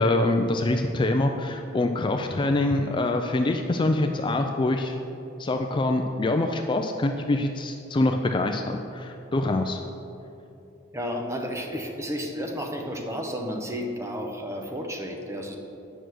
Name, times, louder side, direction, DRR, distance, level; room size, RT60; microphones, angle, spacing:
voice 1, 0.0-5.0 5.4-9.8, left 2 dB, 25° left, 5 dB, 0.4 m, -25 dB
voice 2, 10.9-15.6, equal, 15° right, 2 dB, 0.9 m, -32 dB
9.1 x 6.2 x 6.3 m, 2.7 s
head